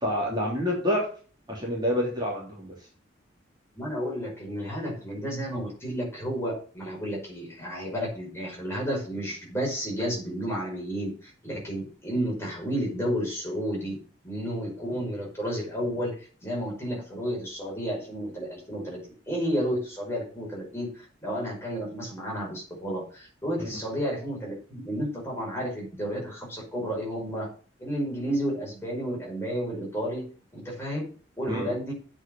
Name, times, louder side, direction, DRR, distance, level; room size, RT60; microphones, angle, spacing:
voice 1, 0.0-1.0 1.5-2.7 23.6-23.7 31.5-31.7, equal, 20° right, -4 dB, 3.4 m, -27 dB
voice 2, 3.8-14.0 14.2-19.0 19.3-27.5 27.8-31.1 31.4-31.9, equal, 15° left, -3 dB, 5.4 m, -32 dB
8.4 x 6.4 x 7.2 m, 0.40 s
head